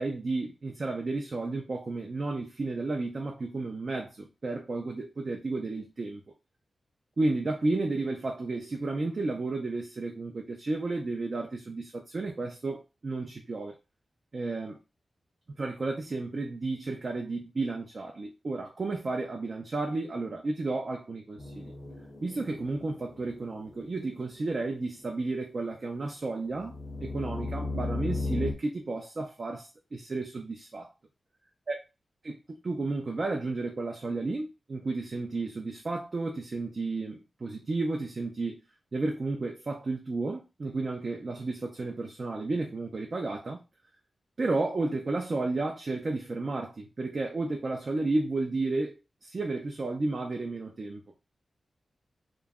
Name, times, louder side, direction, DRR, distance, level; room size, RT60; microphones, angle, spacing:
voice 1, 0.0-6.2 7.2-13.8 14.3-14.8 15.5-21.7 22.2-30.9 31.7-31.8 32.2-38.6 38.9-43.6 44.4-51.0, right 3 dB, 55° right, 0.4 m, -32 dB
sound 1, 21.4-24.1 26.6-28.5, left 2 dB, 40° left, 0.6 m, -35 dB
2.2 x 2.0 x 3.4 m
cardioid pair, 60°, 0 cm